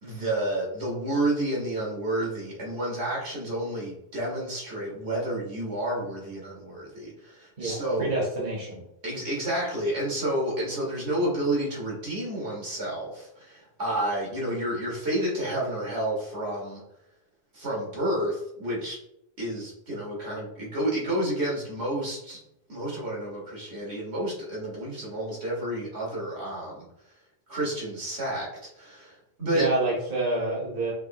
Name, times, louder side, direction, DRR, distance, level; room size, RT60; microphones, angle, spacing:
voice 1, 0.0-8.1 9.0-16.8 17.5-19.0 19.4-22.4 22.7-26.9 27.5-28.5 28.7-29.7, right 1 dB, 80° right, -4 dB, 2.0 m, -30 dB
voice 2, 7.6-8.8 29.4-30.9, right 2 dB, 60° right, -4 dB, 1.3 m, -28 dB
5.8 x 3.1 x 2.9 m, 0.82 s
omnidirectional pair, 1.1 m